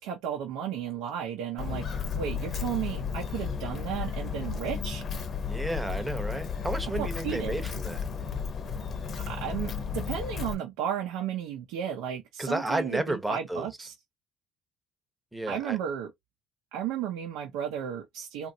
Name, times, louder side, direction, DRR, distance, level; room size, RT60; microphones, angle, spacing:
voice 1, 0.0-5.1 7.0-7.6 9.2-13.9 15.5-16.1 16.7-18.5, right 9 dB, 85° right, 0.7 m, -34 dB
Walk footsteps, 1.6-10.5, left 6 dB, 40° left, 0.7 m, -33 dB
voice 2, 5.5-8.0 12.4-13.9 15.3-15.8, right 1 dB, 5° right, 0.8 m, -32 dB
3.0 x 2.5 x 2.7 m
cardioid pair, 115°, 0 cm